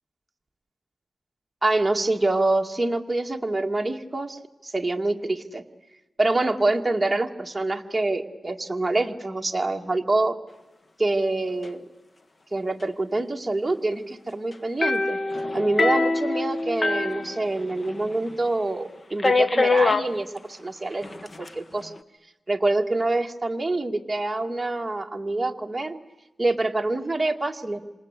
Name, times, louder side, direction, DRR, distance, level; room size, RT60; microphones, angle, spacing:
voice 1, 1.6-5.6 6.2-10.4 11.0-11.8 12.5-15.2 15.5-21.9 22.5-26.0 26.4-27.8, right 2 dB, 20° right, 2 dB, 2.1 m, -26 dB
sound 1, 14.8-18.0 18.3-18.4 19.2-20.1 21.0-21.5, left 3 dB, 40° left, 1.4 m, -24 dB
27.0 x 27.0 x 8.3 m, 1.1 s
cardioid pair, 75°, 0 cm